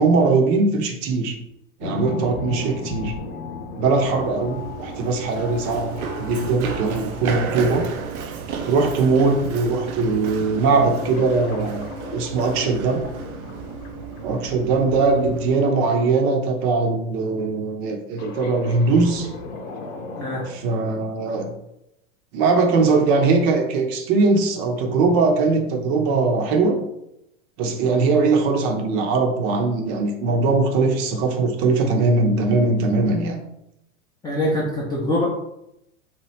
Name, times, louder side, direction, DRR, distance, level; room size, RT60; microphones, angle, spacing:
voice 1, 0.0-1.4 1.8-3.2 3.8-7.9 8.2-8.3 8.7-13.0 14.2-19.3 20.5-21.5 22.3-26.8 27.6-33.4, right 3 dB, 40° right, 3 dB, 0.6 m, -20 dB
sound 1, 1.8-9.2 10.9-16.4 18.2-20.5, left 4 dB, 50° left, 0.7 m, -36 dB
Run, 4.0-15.5, right 6 dB, 90° right, 0.5 m, -33 dB
voice 2, 20.2-20.5 34.2-35.3, left 1 dB, 10° left, -6 dB, 0.5 m, -23 dB
2.9 x 2.2 x 3.0 m, 0.81 s
hypercardioid pair, 100°, 42 cm